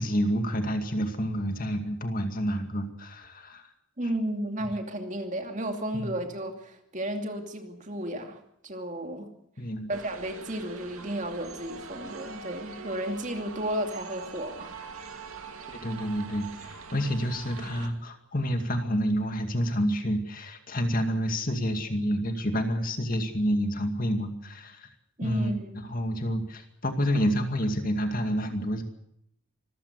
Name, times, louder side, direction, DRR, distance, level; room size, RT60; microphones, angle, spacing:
voice 1, 0.0-3.7 5.9-6.2 9.6-9.9 15.8-24.9 25.2-25.5 25.9-28.8, equal, 40° left, 6 dB, 2.2 m, -28 dB
voice 2, 4.0-9.3 9.9-14.7 25.2-25.8, right 1 dB, 35° right, 4 dB, 2.6 m, -33 dB
sound 1, 9.9-17.9, right 4 dB, 80° right, 2.4 m, -43 dB
25.0 x 15.0 x 8.2 m, 0.74 s
head